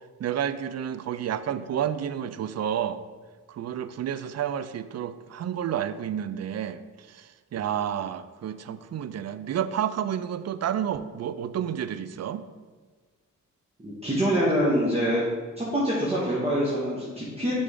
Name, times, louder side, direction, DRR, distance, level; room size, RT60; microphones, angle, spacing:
voice 1, 0.2-3.0 3.5-12.4, right 9 dB, 50° right, 13 dB, 0.4 m, -30 dB
voice 2, 13.8-15.2 15.6-17.6, equal, 20° right, -8 dB, 1.5 m, -25 dB
6.7 x 3.8 x 3.7 m, 1.4 s
cardioid pair, 65°, 33 cm